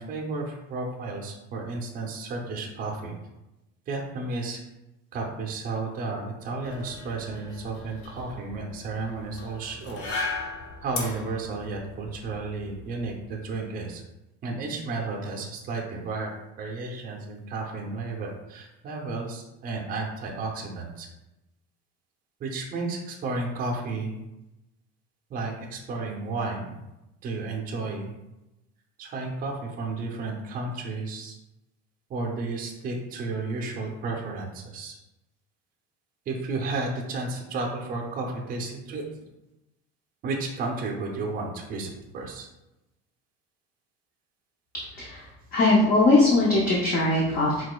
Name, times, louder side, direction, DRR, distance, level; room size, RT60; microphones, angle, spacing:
voice 1, 0.0-3.1 3.9-4.6 5.1-10.1 10.8-14.0 14.4-16.3 16.6-21.1 22.4-24.1 25.3-26.8 27.2-28.1 29.0-31.3 32.1-35.0 36.3-39.0 40.2-42.5, right 3 dB, 25° right, 0 dB, 0.5 m, -32 dB
sound 1, 6.6-13.5, left 3 dB, 80° left, 1.0 m, -38 dB
voice 2, 45.5-47.6, left 2 dB, 25° left, -4 dB, 0.5 m, -20 dB
4.9 x 3.9 x 2.2 m, 0.95 s
cardioid pair, 180°, 33 cm